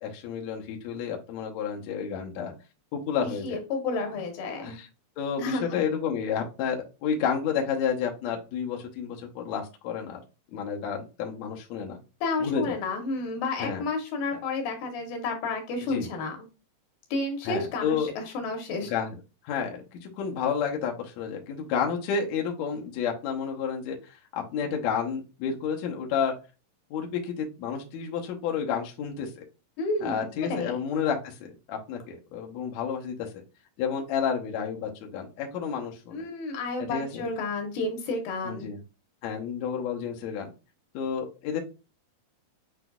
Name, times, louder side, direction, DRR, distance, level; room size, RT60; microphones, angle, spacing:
voice 1, 0.0-2.5 2.9-3.6 4.6-4.9 5.2-10.2 10.5-12.0 12.4-12.8 13.6-13.8 14.3-14.4 15.8-16.1 17.5-18.1 18.8-19.2 19.4-24.2 24.5-26.3 26.9-29.4 30.0-33.3 33.8-36.3 36.9-37.3 38.4-38.8 39.2-40.5 40.9-41.6, left 7 dB, 70° left, 1.8 m, -30 dB
voice 2, 3.4-4.8 5.4-5.8 12.2-16.4 17.1-18.9 29.8-30.7 36.1-38.7, left 3 dB, 85° left, 2.9 m, -31 dB
7.9 x 2.7 x 2.3 m
omnidirectional pair, 4.1 m